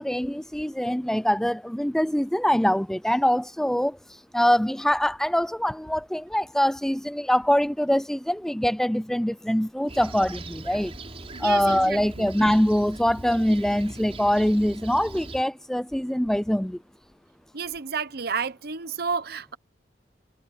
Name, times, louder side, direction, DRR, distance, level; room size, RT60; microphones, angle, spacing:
voice 1, 0.0-4.0 4.3-10.9 11.4-16.8, equal, 5° left, 0.4 m, -23 dB
Fixed-wing aircraft airplane, 9.9-15.4, right 2 dB, 35° right, 4.7 m, -40 dB
voice 2, 11.3-12.3 17.5-19.6, right 5 dB, 60° right, 0.9 m, -31 dB
head